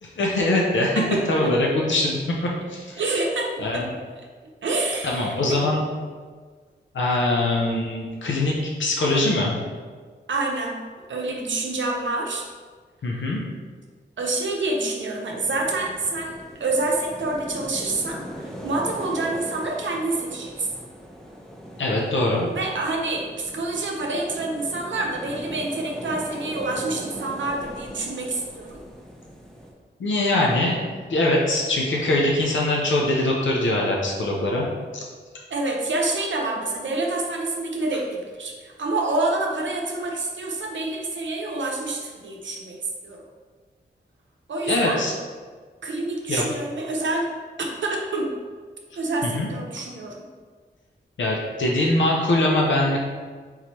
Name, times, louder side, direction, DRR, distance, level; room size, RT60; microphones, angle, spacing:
voice 1, 0.0-1.0 1.3-3.0 3.6-3.9 5.0-5.9 6.9-8.5 8.8-9.6 13.0-13.4 21.8-22.5 30.0-34.7 34.9-35.0 44.7-45.1 46.3-46.4 49.2-49.5 51.2-53.0, left 2 dB, 90° left, -2 dB, 0.7 m, -22 dB
voice 2, 3.0-3.8 4.6-5.7 10.3-10.8 11.1-12.4 13.1-13.3 14.2-20.7 22.5-28.8 35.5-43.2 44.5-45.0 45.8-47.3 47.6-48.3 49.0-50.1, right 2 dB, 85° right, 0 dB, 0.7 m, -27 dB
sound 1, 15.3-29.7, equal, 5° left, 0.9 m, -39 dB
3.8 x 3.0 x 4.3 m, 1.5 s
wide cardioid pair, 65°, 19 cm